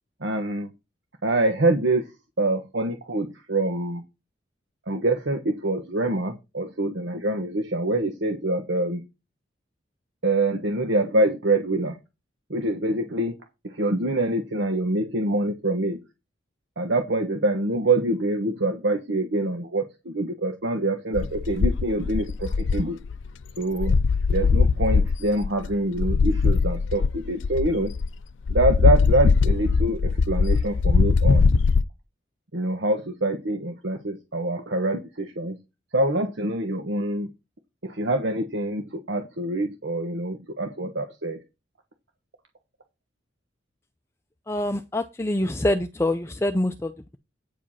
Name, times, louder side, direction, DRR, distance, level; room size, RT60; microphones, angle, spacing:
voice 1, 0.2-0.7 1.2-2.1 2.4-4.0 4.9-9.0 10.2-12.0 12.5-13.3 13.6-16.0 16.8-23.0 23.6-23.9 24.3-27.9 28.5-31.7 32.5-35.6 35.9-37.3 37.8-41.4, right 2 dB, 75° right, 4 dB, 1.2 m, -25 dB
sound 1, 21.1-23.4 23.8-28.1 28.5-31.8, left 4 dB, 90° left, 0.5 m, -21 dB
voice 2, 44.5-47.2, left 1 dB, 15° left, 8 dB, 0.5 m, -25 dB
9.1 x 5.1 x 5.7 m, 0.25 s
head